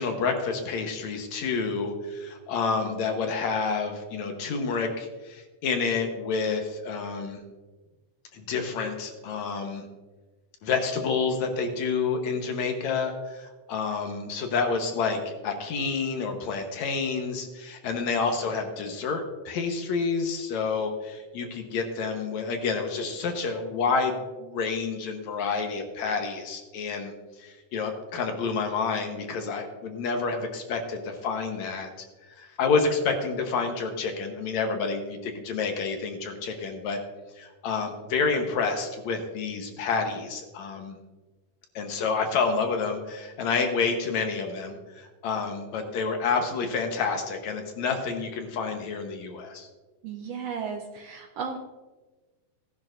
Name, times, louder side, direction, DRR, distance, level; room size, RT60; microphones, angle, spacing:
voice 1, 0.0-7.4 8.3-9.9 10.6-27.1 27.4-31.9 32.4-37.0 37.4-41.0 41.8-49.7, left 4 dB, 70° left, 4 dB, 2.2 m, -29 dB
voice 2, 50.0-51.6, right 6 dB, 75° right, 3 dB, 1.6 m, -34 dB
17.0 x 10.5 x 2.5 m, 1.2 s
omnidirectional pair, 3.6 m